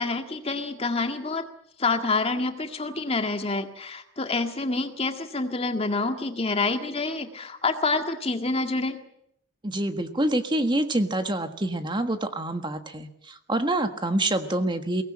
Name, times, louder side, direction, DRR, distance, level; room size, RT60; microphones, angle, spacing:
voice 1, 0.0-1.5 1.8-9.0, left 3 dB, 30° left, 6 dB, 2.0 m, -27 dB
voice 2, 9.6-15.0, right 1 dB, 25° right, 8 dB, 1.5 m, -26 dB
23.0 x 19.0 x 8.8 m, 0.73 s
head